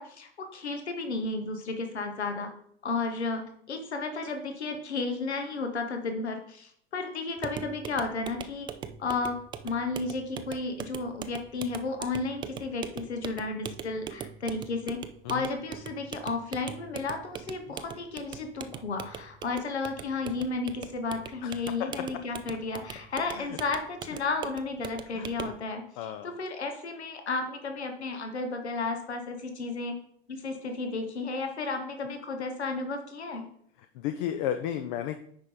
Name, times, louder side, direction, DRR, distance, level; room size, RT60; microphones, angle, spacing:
voice 1, 0.0-2.5 2.8-8.7 9.0-9.4 9.6-15.0 15.3-30.0 30.3-33.5, left 3 dB, 75° left, 6 dB, 1.3 m, -33 dB
sound 1, 7.4-25.6, right 8 dB, 15° right, 0.4 m, -41 dB
voice 2, 25.1-25.5 26.0-26.3 34.0-35.2, left 10 dB, 45° left, 8 dB, 0.7 m, -33 dB
9.5 x 5.3 x 3.8 m, 0.65 s
figure-of-eight pair, 80°, 33 cm